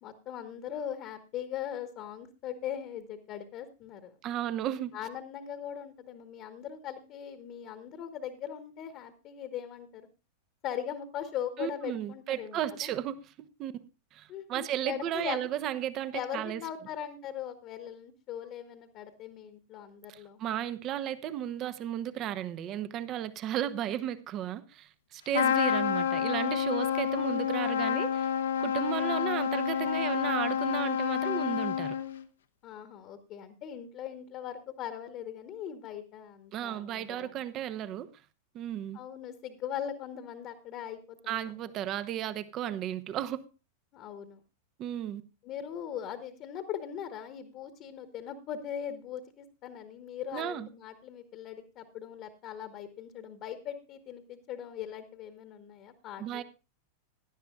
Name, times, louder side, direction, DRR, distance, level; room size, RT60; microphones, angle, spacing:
voice 1, 0.0-4.2 4.9-10.1 10.6-12.9 14.3-15.5 16.1-20.4 32.6-37.3 38.9-41.4 43.9-44.4 45.4-56.4, left 9 dB, 35° left, 1.3 m, -40 dB
voice 2, 4.2-4.9 11.6-13.2 13.6-13.7 14.1-16.6 20.1-28.3 28.6-32.0 36.5-38.1 38.5-39.0 41.3-43.4 44.8-45.2 50.3-50.7 56.2-56.4, right 11 dB, 35° right, 1.0 m, -34 dB
Trumpet, 25.3-32.2, left 8 dB, 65° left, 1.0 m, -29 dB
17.0 x 11.5 x 2.5 m
figure-of-eight pair, 90°, 0 cm